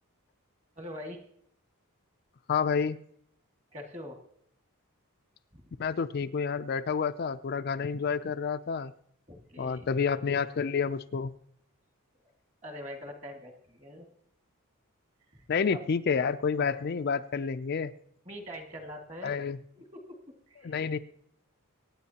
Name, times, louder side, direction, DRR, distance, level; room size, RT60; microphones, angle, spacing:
voice 1, 0.8-1.2 3.7-4.2 5.5-5.6 9.3-9.9 12.6-14.1 15.3-15.8 18.3-19.3 19.8-20.2 20.5-21.0, equal, 30° right, 3 dB, 1.9 m, -43 dB
voice 2, 2.5-3.0 5.8-8.9 9.6-11.3 15.5-17.9 19.2-19.6 20.6-21.0, left 6 dB, 45° left, 10 dB, 0.4 m, -29 dB
25.0 x 9.4 x 2.9 m, 0.68 s
head